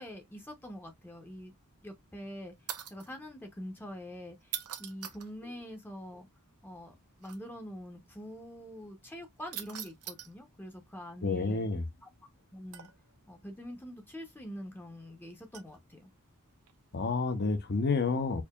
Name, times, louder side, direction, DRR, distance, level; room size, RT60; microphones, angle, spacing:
voice 1, 0.0-1.5 1.8-2.5 2.9-6.3 6.6-6.9 7.2-11.7 12.0-12.1 12.5-12.9 13.3-16.1, equal, 10° left, 0.6 m, -45 dB
sound 1, 2.7-3.1 4.4-5.3 7.2-7.4 9.5-10.3 12.7-13.1 15.5-15.8 16.7-16.9, right 10 dB, 80° right, 0.7 m, -41 dB
voice 2, 11.2-11.8 16.9-18.4, left 4 dB, 50° left, 0.7 m, -29 dB
4.6 x 2.7 x 2.3 m
head